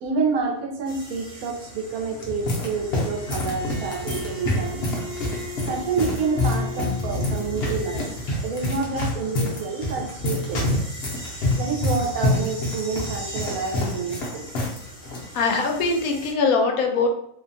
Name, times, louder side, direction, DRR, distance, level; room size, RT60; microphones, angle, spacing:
voice 1, 0.0-4.8 5.7-8.0 8.4-10.7 11.5-14.5, right 4 dB, 85° right, 0 dB, 1.1 m, -28 dB
sound 1, 0.8-16.3, equal, 20° left, 0.7 m, -42 dB
sound 2, 1.9-14.8 15.1-15.2 15.9-16.2, left 1 dB, 55° left, 0.8 m, -27 dB
Bowed string instrument, 2.9-7.7, left 1 dB, 60° right, 0.6 m, -38 dB
voice 2, 15.3-17.1, left 4 dB, 75° left, 3 dB, 1.0 m, -22 dB
2.7 x 2.2 x 2.6 m, 0.73 s
omnidirectional pair, 1.5 m